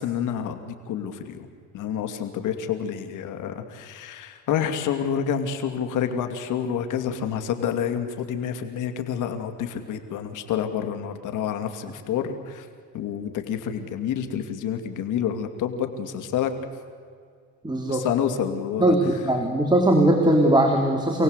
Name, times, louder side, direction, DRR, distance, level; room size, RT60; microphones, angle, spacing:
voice 1, 0.0-1.5 1.7-12.7 12.9-16.5 17.9-18.9, left 8 dB, 85° left, 7 dB, 2.7 m, -28 dB
voice 2, 17.6-18.1 18.8-21.2, right 1 dB, 15° right, 2 dB, 3.6 m, -20 dB
28.5 x 19.0 x 8.2 m, 2.1 s
cardioid pair, 90°, 30 cm